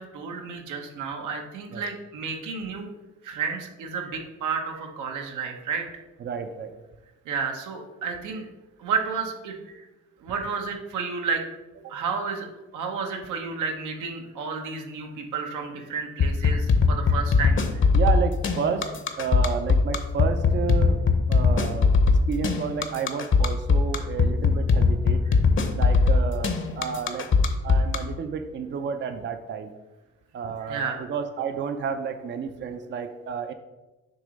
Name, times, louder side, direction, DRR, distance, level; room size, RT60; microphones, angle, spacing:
voice 1, 0.0-2.9 3.2-5.9 7.2-8.5 8.8-9.9 10.2-11.4 11.8-12.5 12.7-17.6 30.7-31.0, right 5 dB, 85° right, 3 dB, 1.0 m, -31 dB
voice 2, 6.2-6.8 17.9-18.9 19.2-21.0 21.3-25.2 25.7-27.3 27.6-29.7 30.3-33.5, right 6 dB, 40° right, 8 dB, 0.5 m, -31 dB
sound 1, 16.2-28.0, left 4 dB, 40° left, 0.8 m, -19 dB
6.8 x 2.9 x 5.1 m, 1.1 s
cardioid pair, 90°, 30 cm